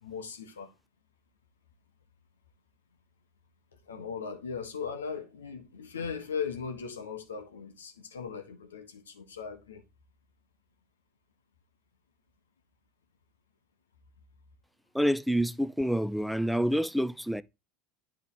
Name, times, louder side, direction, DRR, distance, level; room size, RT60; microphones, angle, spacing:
voice 1, 0.0-0.7 3.9-9.8, left 6 dB, 85° left, 1.2 m, -38 dB
voice 2, 14.9-17.4, equal, ahead, 0.3 m, -27 dB
9.9 x 3.5 x 3.8 m
hypercardioid pair, 75°, 0 cm